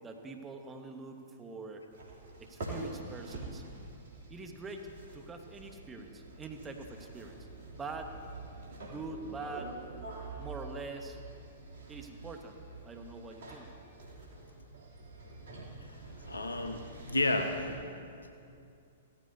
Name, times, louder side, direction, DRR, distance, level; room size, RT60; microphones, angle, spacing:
voice 1, 0.0-1.8 2.4-3.6 4.3-4.9 5.1-7.4 7.8-8.1 8.9-9.8 10.4-11.2 11.9-12.6 12.8-13.7, right 3 dB, 15° right, 5 dB, 1.2 m, -44 dB
sound 1, 1.9-17.8, right 2 dB, 65° right, 2.9 m, -47 dB
voice 2, 16.3-17.8, left 2 dB, 85° left, 5 dB, 1.1 m, -31 dB
16.5 x 14.0 x 2.7 m, 2.5 s
figure-of-eight pair, 110°, 0 cm